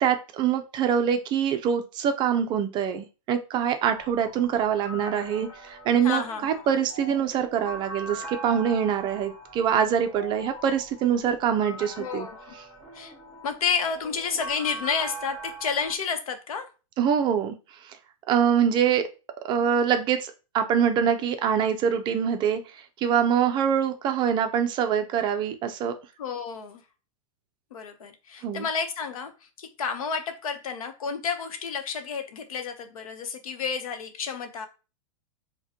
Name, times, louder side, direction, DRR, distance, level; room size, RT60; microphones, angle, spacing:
voice 1, 0.0-12.3 17.0-17.6 17.8-18.0 18.3-19.1 19.4-25.9 28.4-28.7, right 8 dB, 25° right, 0.4 m, -24 dB
sound 1, 3.9-15.9, right 2 dB, 30° left, 1.6 m, -42 dB
voice 2, 6.0-6.6 12.0-12.5 12.9-13.1 13.4-16.7 26.2-26.8 27.7-34.7, left 6 dB, 80° left, 0.8 m, -31 dB
4.8 x 2.2 x 2.8 m
hypercardioid pair, 140°, 18 cm